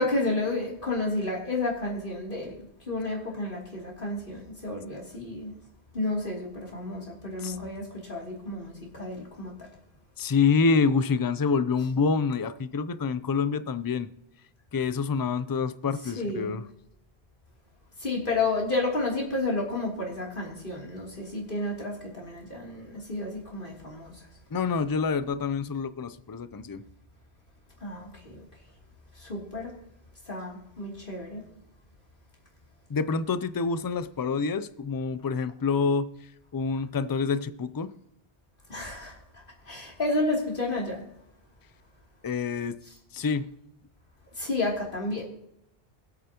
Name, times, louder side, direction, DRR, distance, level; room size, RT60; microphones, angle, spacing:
voice 1, 0.0-2.6 2.9-5.5 5.9-9.7 16.2-16.6 18.0-24.3 27.8-28.4 29.1-29.7 30.2-31.4 38.7-41.0 44.3-45.2, left 2 dB, 55° left, -2 dB, 3.2 m, -31 dB
voice 2, 10.2-14.1 14.7-16.6 24.5-26.8 32.9-36.1 36.5-37.9 42.2-42.8 43.1-43.5, left 5 dB, 35° left, 14 dB, 0.4 m, -27 dB
24.0 x 8.7 x 2.9 m, 0.81 s
omnidirectional pair, 1.0 m